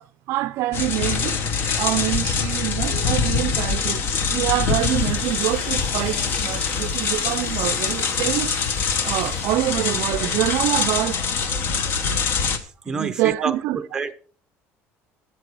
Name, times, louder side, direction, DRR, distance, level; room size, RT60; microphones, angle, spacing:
voice 1, 0.0-1.4 1.8-4.0 4.3-8.7 9.0-11.6 12.9-13.8, right 16 dB, 60° right, 0.4 m, -26 dB
sound 1, 0.7-12.6, left 5 dB, 45° left, 1.0 m, -24 dB
Domestic sounds home sounds, 4.8-9.7, left 2 dB, 25° left, 2.8 m, -41 dB
voice 2, 12.9-14.1, right 4 dB, 15° right, 0.6 m, -28 dB
13.0 x 7.3 x 4.7 m
cardioid pair, 180°, 5 cm